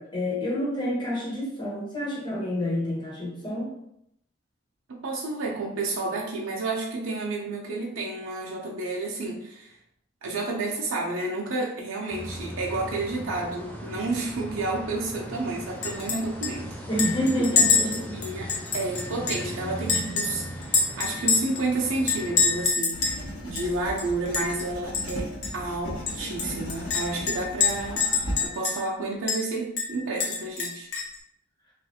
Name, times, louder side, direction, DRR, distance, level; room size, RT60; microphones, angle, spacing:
voice 1, 0.0-3.7 16.9-18.2, equal, 25° left, -7 dB, 1.2 m, -28 dB
voice 2, 4.9-9.7 10.2-16.7 18.1-23.0 23.4-25.3 25.5-28.0 28.4-30.9, right 2 dB, 85° right, -2 dB, 0.6 m, -30 dB
sound 1, 12.1-22.7, equal, 5° left, 0.3 m, -38 dB
Chink clink, 15.8-16.2 16.4-16.5 17.0-19.5 19.9-21.6 22.1-23.2 23.6-23.7 24.0-24.6 24.9-25.1 25.4-25.5 26.1-28.9 29.3-29.4 29.8-31.2, left 5 dB, 55° left, 0.6 m, -26 dB
Writing, 22.9-28.5, equal, 80° left, 1.2 m, -36 dB
3.2 x 2.4 x 2.8 m, 0.75 s
head